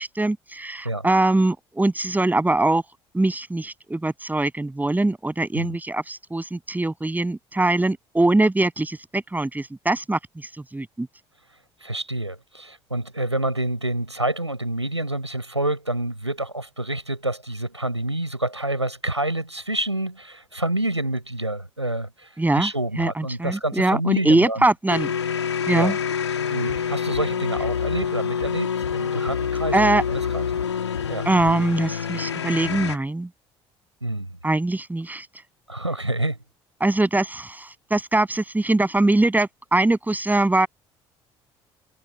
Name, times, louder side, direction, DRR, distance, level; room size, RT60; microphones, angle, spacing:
voice 1, 0.0-2.8 3.1-10.2 10.7-11.1 22.4-22.7 23.0-25.1 25.7-26.0 29.7-30.0 31.3-33.3 34.4-35.3 36.8-40.7, right 2 dB, 10° right, 7.5 m, -22 dB
voice 2, 11.8-22.3 22.5-24.6 25.7-25.9 26.5-29.7 30.1-30.5 31.1-31.3 34.0-34.4 35.7-36.5, right 1 dB, 90° right, 6.8 m, -28 dB
sound 1, 24.9-33.0, left 7 dB, 80° left, 2.7 m, -26 dB
figure-of-eight pair, 50°, 14 cm